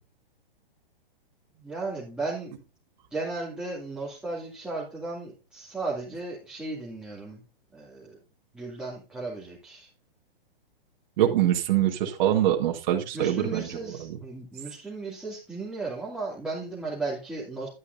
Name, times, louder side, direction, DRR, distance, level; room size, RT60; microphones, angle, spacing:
voice 1, 1.6-2.5 3.1-7.4 7.7-8.2 8.5-9.9 13.1-17.7, right 3 dB, 5° right, -6 dB, 2.5 m, -35 dB
voice 2, 11.2-14.2, right 11 dB, 50° right, 2 dB, 1.7 m, -24 dB
11.0 x 9.7 x 2.7 m, 0.32 s
hypercardioid pair, 140°, 29 cm